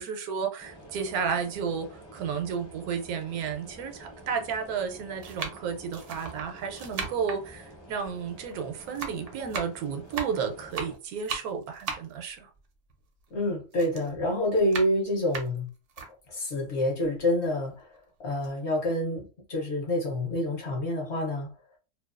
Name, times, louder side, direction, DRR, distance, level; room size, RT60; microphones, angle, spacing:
voice 1, 0.0-12.5, right 6 dB, 80° right, 1.1 m, -32 dB
sound 1, 0.6-11.0, right 1 dB, 15° left, 0.5 m, -49 dB
sound 2, 2.4-2.5 3.4-3.5 4.4-4.7 5.2-8.6 8.8-13.4 13.7-16.1 16.6-16.7 17.0-18.0 18.3-18.5, right 5 dB, 65° right, 0.8 m, -38 dB
voice 2, 13.3-15.7 16.3-17.9 18.2-21.5, left 1 dB, 60° left, 0.8 m, -27 dB
2.6 x 2.3 x 2.4 m
omnidirectional pair, 1.5 m